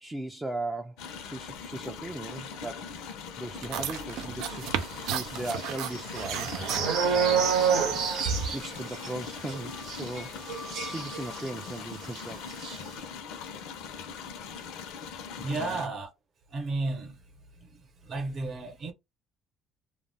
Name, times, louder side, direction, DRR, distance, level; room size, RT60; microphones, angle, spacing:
voice 1, 0.0-2.9 3.4-4.7 5.0-6.5 7.1-7.5 8.5-10.4 10.8-12.5 15.6-15.8, right 2 dB, 15° right, 0.3 m, -38 dB
sound 1, 1.0-15.9, left 6 dB, 90° left, 0.6 m, -41 dB
sound 2, 3.5-8.9, right 7 dB, 85° right, 0.4 m, -35 dB
sound 3, 5.0-11.7 12.0-12.2 12.5-12.8, right 6 dB, 70° right, 0.8 m, -29 dB
voice 2, 15.3-16.1 16.5-17.2 17.6-18.9, right 3 dB, 40° right, 0.8 m, -33 dB
2.3 x 2.0 x 3.3 m
cardioid pair, 130°, 0 cm